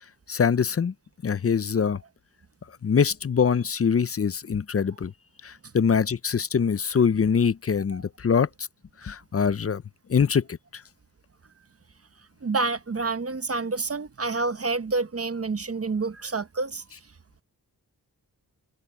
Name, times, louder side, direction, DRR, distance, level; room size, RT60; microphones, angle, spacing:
voice 1, 0.3-0.9 1.2-2.0 2.8-5.1 5.4-8.5 9.0-9.8 10.1-10.6, left 6 dB, 35° left, 0.6 m, -23 dB
voice 2, 12.4-16.8, right 3 dB, 35° right, 0.9 m, -28 dB
wide cardioid pair, 80°, 39 cm